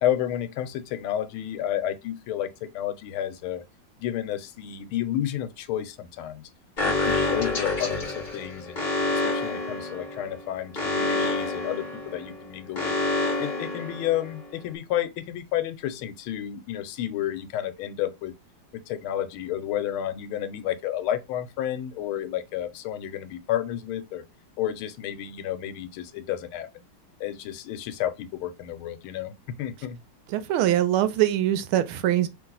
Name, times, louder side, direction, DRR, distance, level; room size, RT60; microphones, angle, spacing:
voice 1, 0.0-3.6 4.0-6.4 6.8-8.8 9.1-12.9 13.4-18.3 18.9-24.2 24.6-26.8 27.2-29.3 29.6-30.0, left 11 dB, 85° left, 1.5 m, -31 dB
Alarm, 6.8-14.5, left 2 dB, 30° left, 0.9 m, -28 dB
voice 2, 30.3-32.3, right 12 dB, 85° right, 1.5 m, -23 dB
3.2 x 3.1 x 3.8 m
omnidirectional pair, 2.3 m